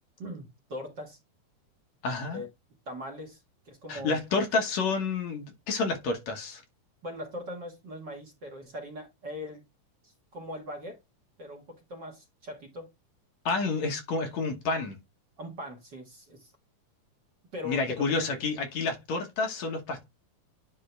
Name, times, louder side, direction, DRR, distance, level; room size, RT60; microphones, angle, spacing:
voice 1, 0.2-1.2 2.3-2.5 2.9-3.4 3.6-4.4 7.0-9.6 10.0-11.0 11.4-12.9 15.4-16.5 17.5-18.3, left 1 dB, 45° right, 1.7 m, -40 dB
voice 2, 2.0-2.4 3.9-6.6 13.5-15.0 17.6-20.1, left 4 dB, 65° left, 2.4 m, -29 dB
10.5 x 3.7 x 3.3 m
omnidirectional pair, 3.6 m